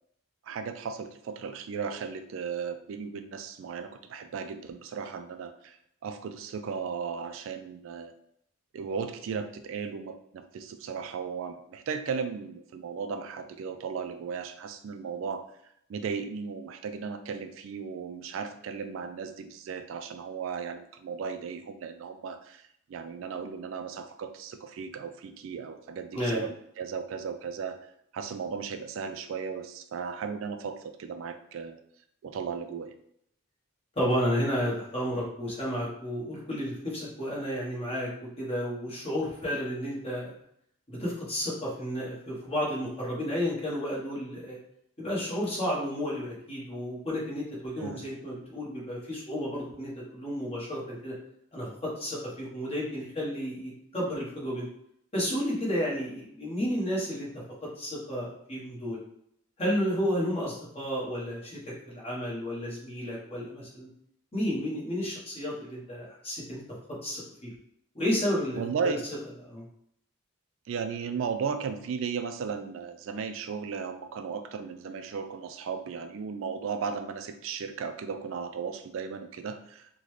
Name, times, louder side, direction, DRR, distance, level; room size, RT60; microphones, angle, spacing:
voice 1, 0.5-5.8 6.0-8.1 8.7-15.5 15.9-22.6 22.9-27.8 28.1-31.8 32.2-32.9 47.8-48.1 68.6-69.0 70.7-79.8, right 6 dB, 65° right, 8 dB, 0.3 m, -36 dB
voice 2, 26.1-26.4 33.9-40.4 40.9-44.6 45.0-51.1 51.5-54.7 55.1-57.3 57.8-59.0 59.6-63.9 64.3-66.6 67.0-67.5 67.9-69.0 69.4-69.6, equal, 30° left, -5 dB, 1.2 m, -32 dB
3.8 x 2.2 x 3.1 m, 0.72 s
head